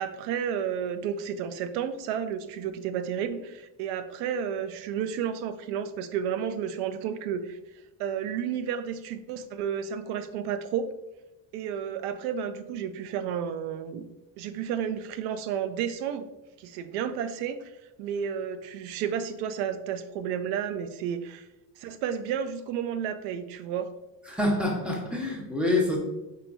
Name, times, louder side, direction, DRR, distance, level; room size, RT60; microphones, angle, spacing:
voice 1, 0.0-7.6 8.0-10.9 11.5-14.0 14.4-16.3 16.6-17.7 18.0-21.5 21.8-23.9, right 8 dB, 85° right, 11 dB, 0.5 m, -31 dB
voice 2, 24.3-26.0, left 2 dB, 5° right, 0 dB, 1.0 m, -26 dB
4.6 x 4.4 x 2.6 m, 1.0 s
cardioid pair, 120°, 40 cm